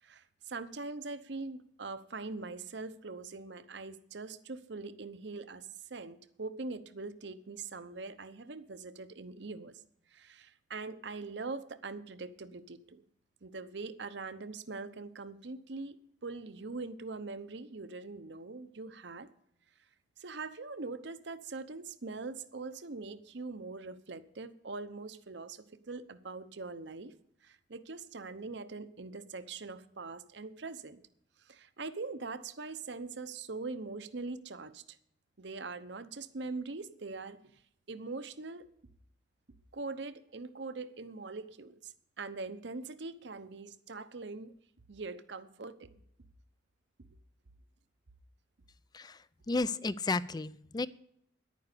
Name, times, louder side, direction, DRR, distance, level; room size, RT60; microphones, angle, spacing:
voice 1, 0.0-9.8 10.1-13.0 13.4-16.0 16.2-19.3 20.2-27.1 27.4-31.0 31.4-35.0 35.4-37.4 37.9-38.7 39.7-44.5 44.9-46.0 47.0-47.1, right 3 dB, 70° right, 12 dB, 0.8 m, -42 dB
voice 2, 49.5-50.9, left 3 dB, 20° left, 18 dB, 0.4 m, -32 dB
11.0 x 9.3 x 6.7 m, 0.71 s
head